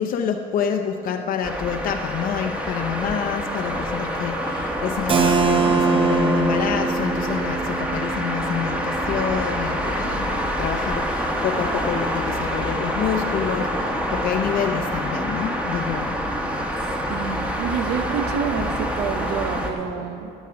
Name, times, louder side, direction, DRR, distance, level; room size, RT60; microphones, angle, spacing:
voice 1, 0.0-16.2, left 7 dB, 55° left, 4 dB, 0.6 m, -27 dB
sound 1, 1.4-19.7, equal, 5° right, 1.1 m, -27 dB
Keyboard (musical), 5.1-10.6, right 4 dB, 30° right, 0.7 m, -24 dB
voice 2, 17.1-20.3, right 7 dB, 80° right, 9 dB, 0.7 m, -28 dB
12.0 x 7.4 x 5.9 m, 2.8 s
cardioid pair, 110°, 17 cm